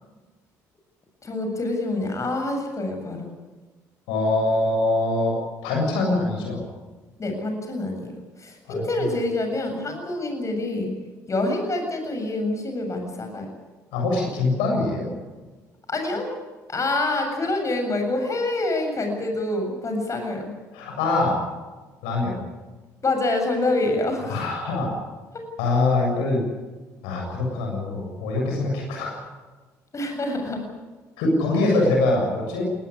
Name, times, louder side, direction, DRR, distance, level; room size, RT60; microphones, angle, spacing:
voice 1, 1.2-3.3 7.2-10.9 11.3-13.5 15.9-16.4 16.7-20.5 23.0-24.4 25.3-25.4 29.9-30.7 31.6-31.8, left 2 dB, 35° left, 4 dB, 7.5 m, -26 dB
voice 2, 4.1-5.4 5.6-6.7 8.7-8.8 13.9-15.1 20.7-21.4 22.0-22.4 24.3-24.9 25.6-26.4 27.0-29.1 31.2-32.6, left 2 dB, 75° left, 0 dB, 7.4 m, -23 dB
20.5 x 20.0 x 9.9 m, 1.3 s
hypercardioid pair, 55°, 9 cm